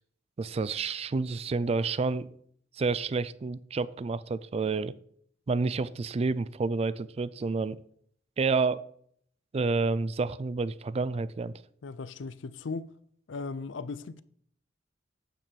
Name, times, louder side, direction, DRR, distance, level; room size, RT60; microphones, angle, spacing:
voice 1, 0.4-2.3 2.8-4.9 5.5-7.8 8.4-8.8 9.5-11.5, right 4 dB, 35° right, 0.4 m, -29 dB
voice 2, 11.8-12.9 13.3-14.2, left 4 dB, 75° left, 0.5 m, -37 dB
9.1 x 6.8 x 4.5 m
head